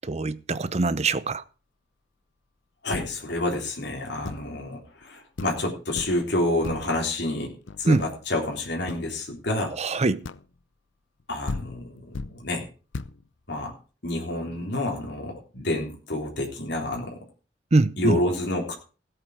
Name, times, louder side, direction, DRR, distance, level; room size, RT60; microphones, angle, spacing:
voice 1, 0.0-1.4 7.9-8.0 9.8-10.2 17.7-18.2, right 3 dB, 35° right, 0.7 m, -23 dB
voice 2, 2.8-9.7 11.3-12.7 13.5-13.7 14.0-17.2 18.0-18.7, left 1 dB, 65° left, 3.7 m, -29 dB
sound 1, 2.9-3.4 4.2-4.6 5.0-5.1 5.4-5.7 6.0-6.3 6.6-7.0 7.7-8.3 8.9-9.1 10.2-10.6 11.2-11.3 11.5-12.5 12.9-13.3, left 3 dB, 90° left, 0.6 m, -36 dB
16.5 x 8.3 x 4.9 m
head